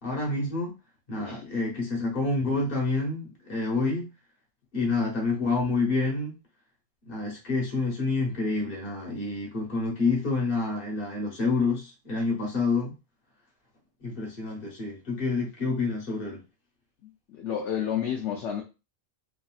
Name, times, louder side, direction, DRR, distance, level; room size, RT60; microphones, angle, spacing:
voice 1, 0.0-0.7 1.1-4.1 4.7-6.3 7.1-12.9 14.0-16.4, left 3 dB, 45° left, 1.2 m, -28 dB
voice 2, 1.2-1.5 17.0-18.6, left 9 dB, 70° left, 0.9 m, -31 dB
3.1 x 2.6 x 2.4 m
omnidirectional pair, 1.4 m